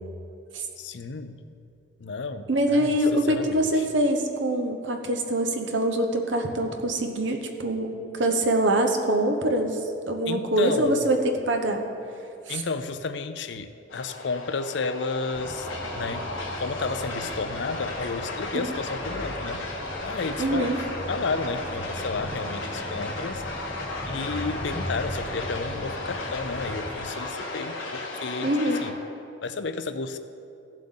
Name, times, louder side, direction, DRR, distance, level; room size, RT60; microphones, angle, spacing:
voice 1, 0.8-1.7 2.0-3.9 10.3-11.1 12.5-15.7 15.9-16.3 16.6-19.6 20.0-20.8 21.1-23.4 24.1-28.9 29.4-30.2, left 4 dB, 65° left, 10 dB, 0.5 m, -32 dB
voice 2, 2.5-9.8 10.1-11.9 12.5-12.6 18.5-18.7 20.4-20.8 28.4-28.8, right 1 dB, 70° right, 3 dB, 1.0 m, -24 dB
sound 1, 13.9-28.9, left 2 dB, 80° left, 1.4 m, -35 dB
sound 2, 15.3-27.1, equal, 10° left, 0.6 m, -38 dB
15.5 x 7.5 x 3.8 m, 2.6 s
head